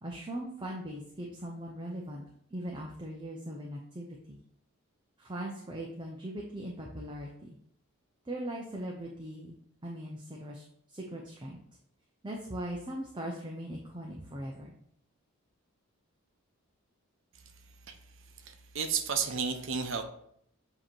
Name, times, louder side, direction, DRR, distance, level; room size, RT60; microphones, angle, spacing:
voice 1, 0.0-2.2 2.5-4.4 5.2-7.6 8.3-9.6 9.8-11.6 12.2-14.7, right 1 dB, 20° right, -1 dB, 0.6 m, -40 dB
voice 2, 18.4-20.0, right 6 dB, 60° right, 6 dB, 0.7 m, -32 dB
7.6 x 2.9 x 4.4 m, 0.70 s
head